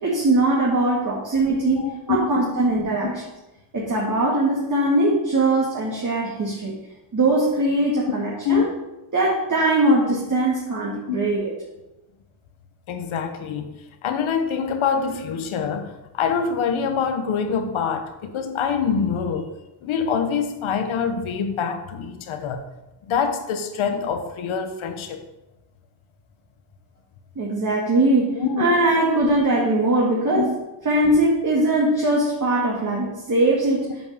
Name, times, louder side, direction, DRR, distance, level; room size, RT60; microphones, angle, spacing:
voice 1, 0.0-3.1 3.7-6.7 7.1-8.7 9.1-11.5 27.4-30.5 30.8-33.9, right 2 dB, 40° right, -4 dB, 2.2 m, -21 dB
voice 2, 1.8-2.2 3.0-3.1 8.4-8.6 11.1-11.3 12.9-13.7 14.0-19.5 19.8-22.6 23.0-25.2 28.4-28.7 30.3-30.5, left 6 dB, 80° left, 7 dB, 1.3 m, -25 dB
7.9 x 5.6 x 6.9 m, 1.0 s
cardioid pair, 95°, 48 cm